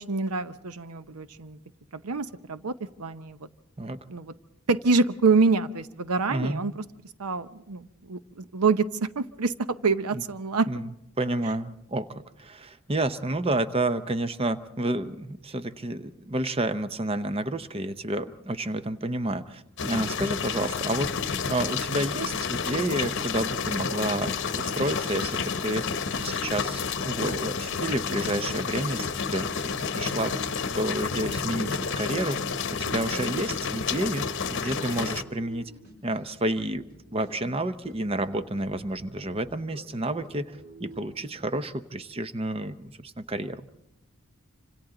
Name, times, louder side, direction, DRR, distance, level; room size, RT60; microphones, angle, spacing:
voice 1, 0.0-1.6 1.9-2.7 3.0-3.4 4.1-4.3 4.7-6.8 7.2-9.5 9.8-10.7, right 4 dB, 90° right, 12 dB, 0.8 m, -26 dB
voice 2, 6.3-6.7 10.1-10.2 10.7-10.9 11.2-32.5 32.8-35.7 36.0-43.6, right 1 dB, 25° right, 12 dB, 0.7 m, -30 dB
sound 1, 19.8-35.2, left 5 dB, 55° left, 0.9 m, -30 dB
sound 2, 27.7-34.2 34.5-34.6 34.9-41.7, equal, 45° right, 4.3 m, -49 dB
26.5 x 26.0 x 3.9 m, 0.85 s
head